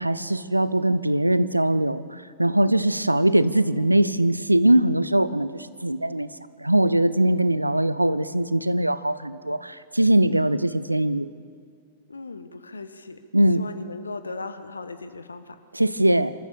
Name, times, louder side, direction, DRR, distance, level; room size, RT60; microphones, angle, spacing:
voice 1, 0.0-6.3 6.6-11.3 13.3-13.6 15.7-16.3, right 1 dB, 85° right, 16 dB, 0.7 m, -21 dB
voice 2, 12.1-13.2 13.5-15.6, left 3 dB, 75° left, 10 dB, 1.2 m, -37 dB
26.5 x 14.0 x 6.9 m, 2.2 s
figure-of-eight pair, 100°, 0 cm